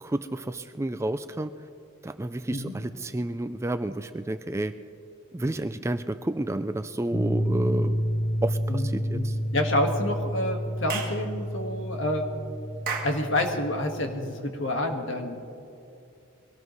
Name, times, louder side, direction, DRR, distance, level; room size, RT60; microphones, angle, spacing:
voice 1, 0.0-1.5 2.0-4.7 5.3-8.0 8.4-9.4, right 1 dB, 15° right, 10 dB, 0.3 m, -30 dB
sound 1, 7.1-14.4, equal, 30° left, 1.0 m, -30 dB
voice 2, 8.7-12.3 13.0-15.4, left 1 dB, 65° left, 3 dB, 1.7 m, -28 dB
Clapping / Chirp tweet, 10.9-11.2 12.9-13.2, right 5 dB, 45° right, 1.8 m, -31 dB
23.0 x 18.0 x 3.2 m, 2.7 s
head